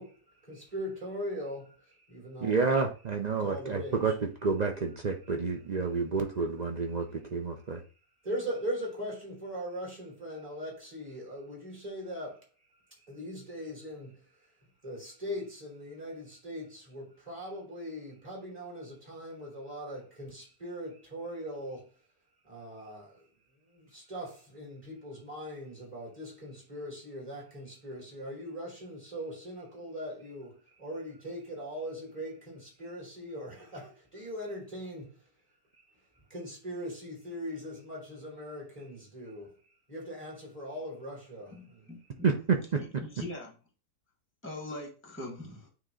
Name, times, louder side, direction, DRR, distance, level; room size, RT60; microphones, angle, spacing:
voice 1, 0.0-2.6 3.4-4.0 8.2-12.5 13.0-14.3 14.8-21.9 22.4-23.3 23.7-35.2 35.7-35.8 36.3-39.6 39.9-41.9, equal, 20° right, 3.6 m, -40 dB
voice 2, 2.4-7.8 42.2-43.0, right 4 dB, 70° right, 0.4 m, -29 dB
voice 3, 41.5-42.3 43.0-43.5 44.4-45.7, left 2 dB, 10° left, 1.3 m, -42 dB
8.9 x 3.0 x 3.8 m
omnidirectional pair, 1.7 m